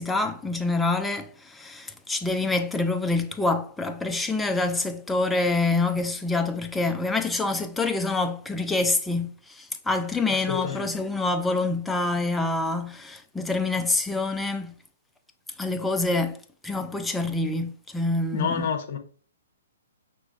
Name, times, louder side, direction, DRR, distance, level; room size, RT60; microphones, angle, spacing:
voice 1, 0.0-14.7 15.6-16.4 16.6-18.7, left 2 dB, 5° left, 0.5 m, -26 dB
voice 2, 10.5-10.9 18.3-19.0, left 7 dB, 55° left, 0.9 m, -28 dB
5.8 x 3.0 x 2.5 m
hypercardioid pair, 130°, 0 cm